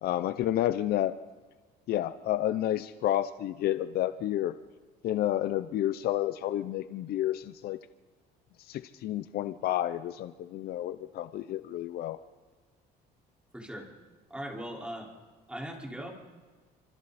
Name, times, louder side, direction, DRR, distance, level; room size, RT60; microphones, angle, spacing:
voice 1, 0.0-1.1 1.9-4.5 5.0-7.8 8.7-12.2, left 13 dB, 70° left, 12 dB, 0.7 m, -30 dB
voice 2, 13.5-13.9 14.3-15.1 15.5-16.1, equal, 5° right, -1 dB, 4.8 m, -39 dB
28.0 x 25.5 x 4.3 m, 1.4 s
cardioid pair, 110°, 17 cm